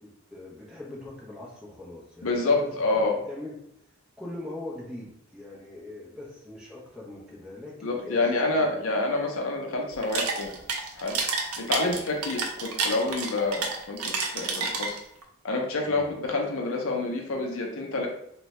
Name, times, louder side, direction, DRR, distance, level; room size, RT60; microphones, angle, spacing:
voice 1, 0.0-2.7 3.3-3.5 4.2-8.2 8.5-8.7 11.8-12.0 15.8-16.0, left 1 dB, 5° right, -5 dB, 0.6 m, -41 dB
voice 2, 2.2-3.1 7.8-10.5 11.0-11.2 11.6-15.0 15.4-18.1, left 2 dB, 70° left, 1 dB, 0.5 m, -27 dB
sound 1, 9.9-15.2, right 4 dB, 80° right, 0.5 m, -30 dB
2.6 x 2.2 x 3.0 m, 0.76 s
head